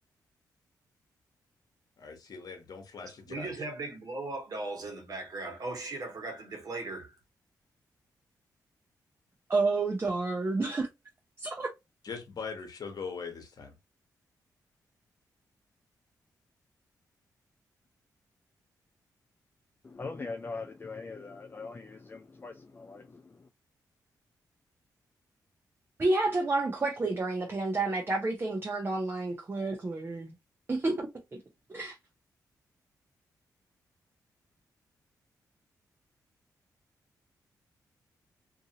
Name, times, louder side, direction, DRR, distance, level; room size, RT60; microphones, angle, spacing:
voice 1, 2.0-3.5 12.0-13.7, left 5 dB, 60° left, 1.0 m, -41 dB
voice 2, 3.0-7.1, right 2 dB, 55° right, 1.2 m, -38 dB
voice 3, 9.5-10.9 11.4-11.7 26.0-30.3 30.7-31.4 31.7-32.0, right 3 dB, 30° right, 0.7 m, -30 dB
voice 4, 19.8-23.5, left 3 dB, 30° left, 0.4 m, -42 dB
2.7 x 2.6 x 2.8 m
cardioid pair, 60°, 7 cm